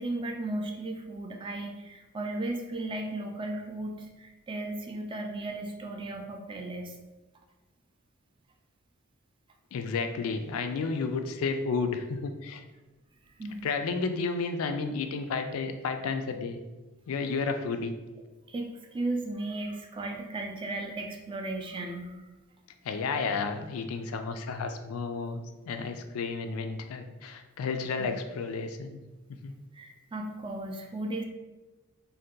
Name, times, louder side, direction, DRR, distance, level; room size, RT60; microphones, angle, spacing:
voice 1, 0.0-7.0 13.4-13.6 18.5-22.2 28.0-28.1 29.7-31.2, right 2 dB, 25° right, 3 dB, 0.3 m, -35 dB
voice 2, 9.7-12.6 13.6-16.6 17.1-17.9 22.8-29.0 29.4-29.5, left 4 dB, 85° left, 7 dB, 0.3 m, -32 dB
2.7 x 2.2 x 3.6 m, 1.2 s
head